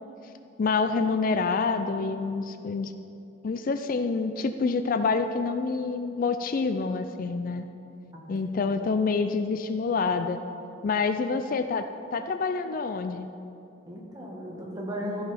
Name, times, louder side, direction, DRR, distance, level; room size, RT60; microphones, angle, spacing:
voice 1, 0.6-2.9 3.4-7.6 8.3-10.4 10.8-11.8 12.1-13.3, left 4 dB, 45° left, 9 dB, 0.4 m, -27 dB
voice 2, 8.1-8.7 13.9-15.3, equal, 20° right, -2 dB, 1.7 m, -36 dB
14.0 x 5.7 x 5.8 m, 2.8 s
head